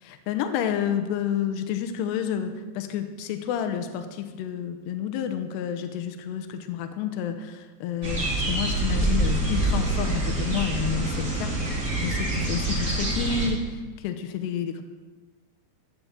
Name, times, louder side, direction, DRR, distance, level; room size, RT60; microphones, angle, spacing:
voice 1, 0.0-13.6 14.0-14.8, left 8 dB, 80° left, 7 dB, 2.9 m, -30 dB
sound 1, 8.0-13.5, right 2 dB, 20° right, 2.8 m, -26 dB
13.5 x 6.8 x 7.2 m, 1.3 s
omnidirectional pair, 5.1 m